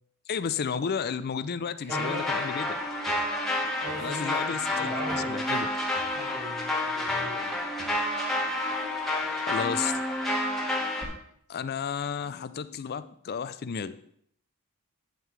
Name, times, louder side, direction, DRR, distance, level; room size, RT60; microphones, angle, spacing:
voice 1, 0.3-2.7 4.0-5.0 5.3-5.7 9.5-9.9 11.5-14.0, left 6 dB, 45° left, 14 dB, 0.4 m, -32 dB
voice 2, 1.8-2.4 3.8-5.5 6.1-7.5, right 1 dB, 35° right, -4 dB, 1.5 m, -39 dB
sound 1, 1.9-11.1, left 1 dB, ahead, 1.5 m, -29 dB
sound 2, 3.1-3.4 3.9-4.1 5.1-5.5 6.0-6.2 7.1-7.3 7.8-8.1, right 1 dB, 20° right, 1.0 m, -47 dB
9.3 x 7.9 x 3.3 m, 0.68 s
head